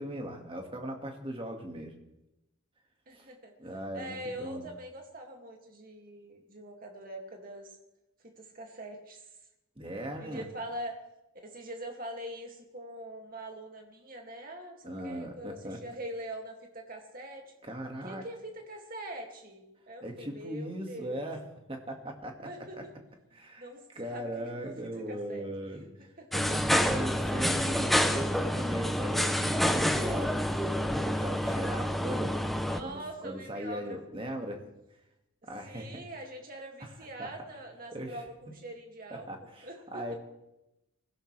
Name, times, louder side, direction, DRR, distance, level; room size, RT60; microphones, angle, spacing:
voice 1, 0.0-1.9 3.1-3.3 3.6-4.7 9.8-10.4 14.8-15.8 17.6-18.2 20.0-21.4 21.7-22.8 23.3-23.7 24.0-25.9 26.5-30.5 30.9-32.3 32.8-34.6 35.4-36.0 36.8-36.9 37.2-37.3 37.9-38.2 39.3-40.1, right 1 dB, 25° right, 3 dB, 1.9 m, -38 dB
voice 2, 3.1-3.5 3.9-7.8 8.3-9.3 10.2-11.0 11.4-17.4 18.0-21.3 22.4-22.9 23.6-25.5 26.2-26.6 32.6-34.0 35.6-40.0, right 1 dB, 40° right, 2 dB, 2.3 m, -43 dB
sound 1, 26.3-32.8, equal, ahead, 0.7 m, -28 dB
24.5 x 16.5 x 3.3 m, 0.92 s
head